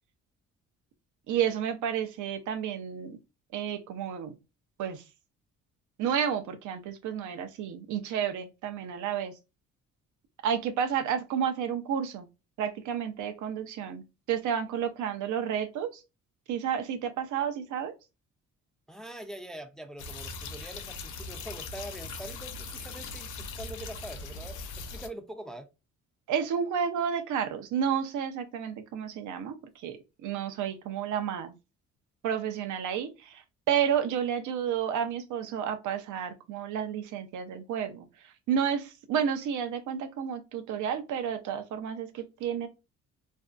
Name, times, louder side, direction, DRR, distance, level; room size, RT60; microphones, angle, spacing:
voice 1, 1.3-3.2 3.5-4.4 4.8-5.0 6.0-9.3 10.4-12.3 12.6-16.0 16.5-17.9 26.3-31.5 32.2-42.7, right 8 dB, 75° right, 0.6 m, -31 dB
voice 2, 18.9-25.7, right 1 dB, ahead, 0.4 m, -43 dB
sound 1, 20.0-25.1, left 3 dB, 85° left, 0.5 m, -40 dB
2.6 x 2.2 x 2.4 m
cardioid pair, 90°, 30 cm